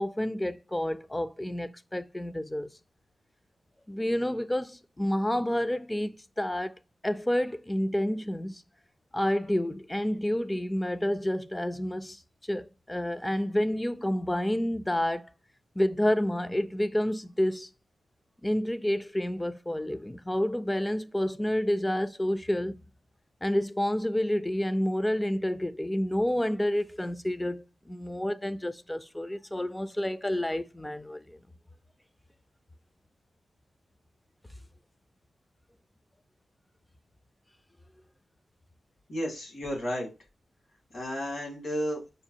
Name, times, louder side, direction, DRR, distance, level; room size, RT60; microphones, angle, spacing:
voice 1, 0.0-2.7 3.9-6.7 7.0-8.6 9.1-15.3 15.8-17.7 18.4-22.8 23.4-31.4, left 1 dB, 10° left, 0.3 m, -29 dB
voice 2, 39.1-40.1 40.9-42.0, equal, 70° left, 2.4 m, -32 dB
5.2 x 2.4 x 2.7 m
wide cardioid pair, 90°, 0 cm